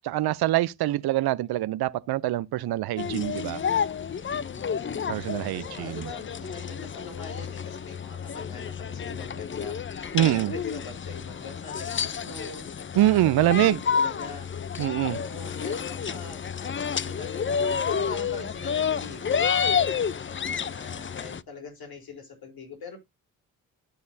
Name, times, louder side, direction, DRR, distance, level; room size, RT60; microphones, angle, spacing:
voice 1, 0.0-3.6 5.1-6.0 10.1-10.5 13.0-13.8 14.8-15.2, right 14 dB, 80° right, 0.6 m, -24 dB
sound 1, 3.0-21.4, left 6 dB, 30° left, 0.6 m, -30 dB
voice 2, 4.3-14.5 15.1-20.1 20.4-23.0, left 4 dB, 70° left, 3.9 m, -43 dB
13.0 x 6.6 x 2.7 m
supercardioid pair, 50°, 37 cm